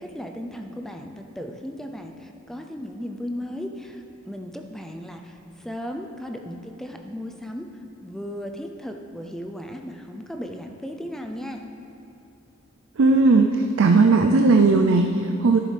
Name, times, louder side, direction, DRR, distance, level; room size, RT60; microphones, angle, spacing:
voice 1, 0.0-11.6, equal, ahead, 3 dB, 0.4 m, -36 dB
voice 2, 13.0-15.6, right 3 dB, 65° right, 4 dB, 0.4 m, -17 dB
11.5 x 10.0 x 3.3 m, 2.9 s
head